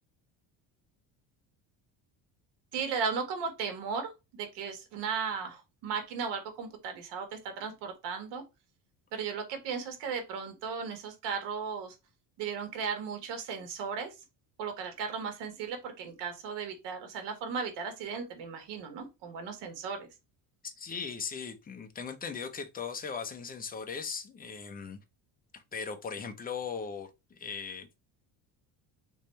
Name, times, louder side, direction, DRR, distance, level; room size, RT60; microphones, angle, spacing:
voice 1, 2.7-8.4 9.1-11.9 12.4-14.1 14.6-20.1, right 6 dB, 75° right, 1.7 m, -36 dB
voice 2, 20.6-25.0 25.5-28.0, left 6 dB, 20° left, 0.7 m, -39 dB
3.6 x 3.2 x 4.3 m
cardioid pair, 130°, 42 cm